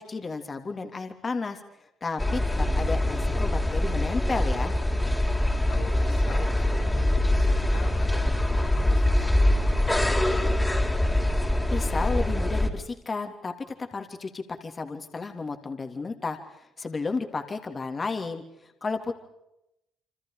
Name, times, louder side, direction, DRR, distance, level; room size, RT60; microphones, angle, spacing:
voice 1, 0.0-1.6 2.0-4.7 11.3-11.4 11.7-13.5 13.9-18.4 18.8-19.1, left 4 dB, 35° left, 6 dB, 3.1 m, -32 dB
sound 1, 2.2-12.7, left 1 dB, 10° left, 3.7 m, -24 dB
voice 2, 5.7-10.6, left 6 dB, 80° left, 2 dB, 6.0 m, -43 dB
28.5 x 25.5 x 5.0 m, 0.84 s
cardioid pair, 90°, 0 cm